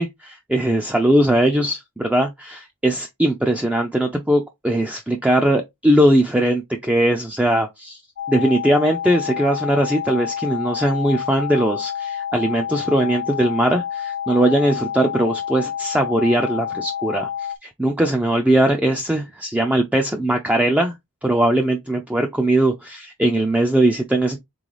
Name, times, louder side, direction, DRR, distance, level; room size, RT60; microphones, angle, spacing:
voice 1, 0.0-8.0 8.3-20.9 21.2-24.4, right 1 dB, 5° right, 0.4 m, -20 dB
sound 1, 8.2-17.6, left 9 dB, 55° left, 0.4 m, -28 dB
3.9 x 3.7 x 3.1 m
head